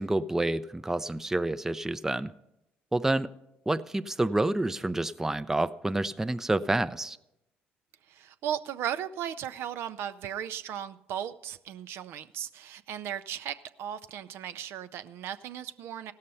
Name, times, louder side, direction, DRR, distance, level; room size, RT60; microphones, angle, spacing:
voice 1, 0.0-2.3 2.9-3.3 3.7-7.2, right 2 dB, 10° right, 13 dB, 0.4 m, -28 dB
voice 2, 8.1-16.1, right 10 dB, 70° right, 11 dB, 0.5 m, -36 dB
16.0 x 6.5 x 5.5 m, 0.87 s
supercardioid pair, 65°, 4 cm